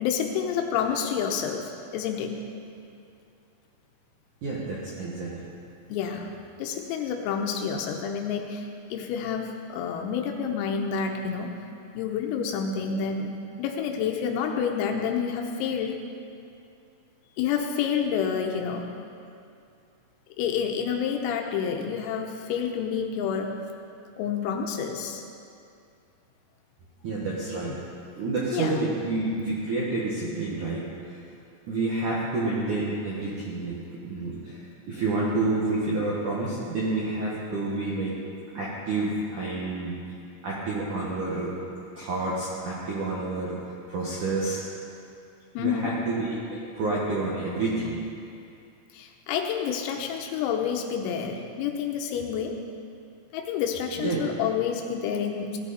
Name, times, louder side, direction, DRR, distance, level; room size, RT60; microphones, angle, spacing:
voice 1, 0.0-2.3 5.9-6.3 6.6-11.6 12.0-16.0 17.4-18.9 20.4-23.5 24.2-25.2 28.5-28.8 45.6-45.9 48.9-52.6 53.3-55.6, left 7 dB, 85° left, 2 dB, 3.6 m, -29 dB
voice 2, 4.4-5.5 27.0-27.8 28.1-31.2 31.7-38.1 38.5-40.0 40.4-41.6 42.0-43.6 43.9-44.6 45.6-48.0 54.0-54.2, right 2 dB, 70° right, -6 dB, 1.9 m, -29 dB
17.5 x 12.0 x 4.3 m, 2.5 s
omnidirectional pair, 5.9 m